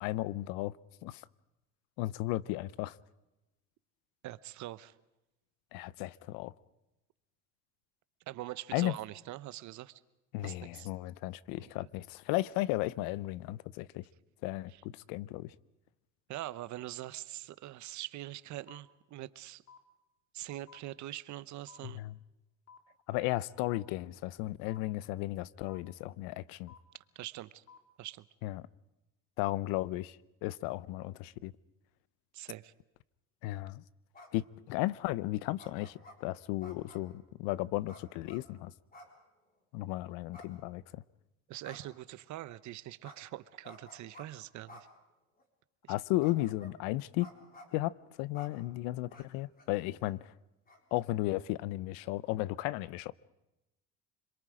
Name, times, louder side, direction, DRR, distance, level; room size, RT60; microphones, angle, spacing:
voice 1, 0.0-0.7 1.0-1.2 2.0-2.9 5.7-6.5 8.7-8.9 10.3-14.0 14.4-15.5 21.8-22.1 23.1-26.7 28.4-28.6 29.4-31.5 33.4-33.8 34.3-38.7 39.7-41.0 45.9-47.3 47.7-50.3 50.9-53.1, left 17 dB, 80° left, 0.7 m, -35 dB
voice 2, 4.2-4.9 8.3-10.0 10.4-10.9 11.6-11.9 14.7-14.8 16.3-19.6 20.3-22.0 27.1-27.6 28.0-28.2 32.3-32.7 41.5-44.9 45.8-45.9, right 15 dB, 55° right, 0.9 m, -43 dB
sound 1, 18.7-18.8 19.7-19.8 20.7-20.8 21.7-21.8 22.7-22.8 23.7-23.8 24.7-24.8 25.7-25.8 26.7-26.8 27.7-27.8, left 7 dB, 50° left, 2.7 m, -54 dB
sound 2, 34.1-34.5 35.6-36.2 36.6-37.1 37.9-38.4 38.9-39.2 39.5-39.6 40.3-41.0 41.6-42.0 43.0-43.2 43.6-44.3 44.7-44.8 45.4-45.5 46.2-46.8 47.2-47.8 48.3-48.5 49.1-49.2 49.6-49.7 50.0-50.1 50.7-51.0, left 2 dB, 25° left, 3.9 m, -53 dB
26.5 x 22.5 x 5.0 m
supercardioid pair, 105°, 35 cm